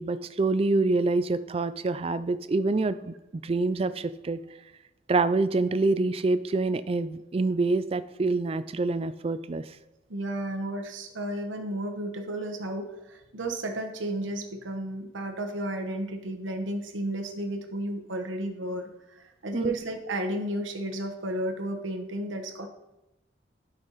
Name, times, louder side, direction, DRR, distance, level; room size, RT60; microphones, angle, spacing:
voice 1, 0.0-4.4 5.1-9.7 19.5-19.8, right 3 dB, 30° right, 13 dB, 0.3 m, -26 dB
voice 2, 10.1-22.7, right 1 dB, 85° right, 5 dB, 1.2 m, -33 dB
11.5 x 5.6 x 4.1 m, 0.93 s
head